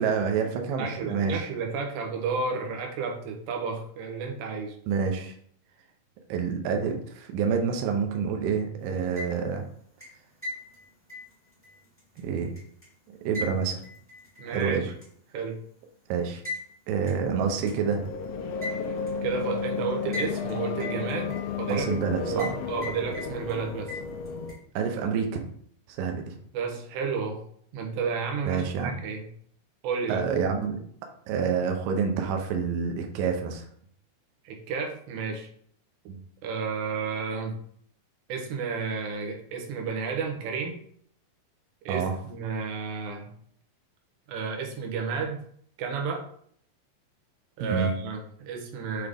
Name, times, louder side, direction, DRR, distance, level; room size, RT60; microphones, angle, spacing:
voice 1, 0.0-1.5 4.9-5.3 6.3-9.6 12.2-12.5 13.2-13.8 14.5-14.8 16.1-16.4 16.9-18.0 21.7-22.5 24.8-25.4 25.9-26.3 28.5-28.9 30.1-30.8 31.3-33.7 36.1-36.2 41.9-42.2 47.6-48.0, right 6 dB, 75° right, 4 dB, 2.2 m, -27 dB
voice 2, 0.8-4.8 14.4-14.9 15.3-15.6 19.2-21.9 22.2-23.9 26.5-27.4 27.7-29.3 29.8-30.2 34.4-35.5 36.4-37.6 38.3-40.8 41.9-43.3 44.3-45.4 45.8-46.3 47.6-49.1, right 5 dB, 90° right, 2 dB, 3.2 m, -32 dB
sound 1, 8.9-9.6 10.0-12.9 13.3-14.6 15.0-15.1 16.4-16.6 17.1-17.2 17.7-17.8 18.6-19.1 20.1-20.5 20.8-21.7 22.4-22.6 22.8-23.5 23.9-24.6, left 2 dB, 15° left, 0.4 m, -38 dB
sound 2, 17.1-24.5, left 5 dB, 85° left, 2.9 m, -33 dB
7.9 x 3.6 x 3.5 m, 0.63 s
omnidirectional pair, 4.8 m